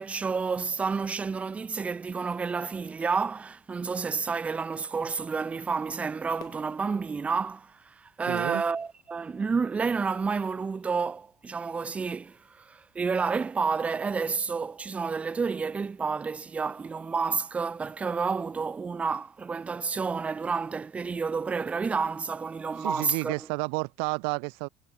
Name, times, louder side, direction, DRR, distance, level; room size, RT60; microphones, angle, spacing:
voice 1, 0.0-23.3, right 5 dB, 15° right, 0.3 m, -30 dB
Fireworks, 6.4-9.7 10.3-10.4, left 13 dB, 45° left, 0.6 m, -54 dB
voice 2, 8.3-8.6 22.8-24.7, right 40 dB or more, 90° right, 0.4 m, -31 dB
cardioid pair, 155°, 9 cm